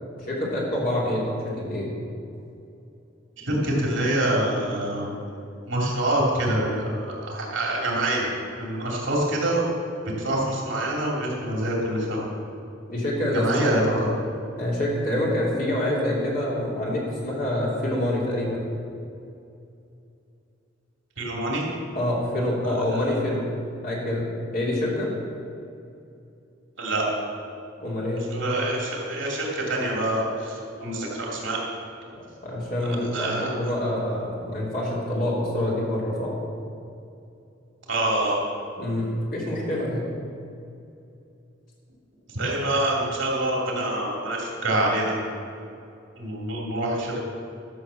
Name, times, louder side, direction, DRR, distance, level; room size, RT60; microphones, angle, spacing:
voice 1, 0.2-1.9 12.9-13.8 14.6-18.7 21.9-23.5 23.8-25.1 27.8-28.3 32.1-36.3 38.8-40.0, left 1 dB, 45° left, -4 dB, 3.1 m, -26 dB
voice 2, 3.4-5.2 5.7-8.3 8.6-9.7 10.2-12.2 13.3-14.1 21.2-21.6 22.9-23.0 26.8-27.0 28.3-31.6 32.9-33.5 37.9-38.4 42.3-45.1 46.2-47.2, right 1 dB, 70° right, -3 dB, 3.0 m, -26 dB
12.5 x 6.3 x 7.1 m, 2.6 s
head